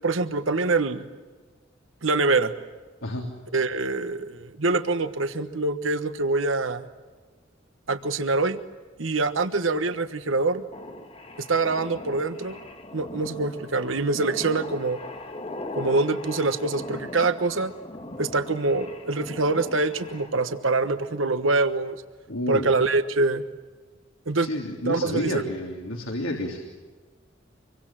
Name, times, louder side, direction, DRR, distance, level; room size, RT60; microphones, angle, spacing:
voice 1, 0.0-1.0 2.0-2.5 3.5-6.8 7.9-8.6 9.0-10.6 11.4-12.6 12.9-15.0 15.7-17.7 18.2-22.0 22.5-23.4 24.3-24.5 24.8-25.4, right 3 dB, 80° right, 10 dB, 1.3 m, -25 dB
sound 1, 10.7-20.6, left 2 dB, 30° left, 2.0 m, -39 dB
voice 2, 22.3-22.7 24.4-26.6, left 1 dB, 85° left, 1 dB, 3.3 m, -30 dB
26.5 x 23.5 x 7.5 m, 1.4 s
head